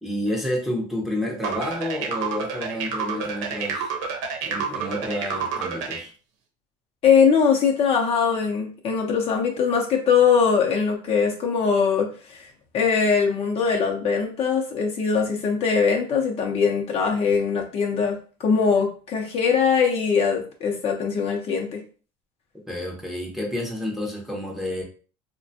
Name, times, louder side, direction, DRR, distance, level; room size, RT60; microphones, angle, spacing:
voice 1, 0.0-3.9 4.4-6.1 22.7-24.8, left 1 dB, ahead, -2 dB, 0.8 m, -29 dB
sound 1, 1.4-6.0, right 6 dB, 85° right, 0.7 m, -29 dB
voice 2, 7.0-12.5 12.7-21.8, left 6 dB, 40° left, 0 dB, 0.7 m, -21 dB
3.2 x 2.2 x 2.7 m, 0.39 s
supercardioid pair, 125°, 16 cm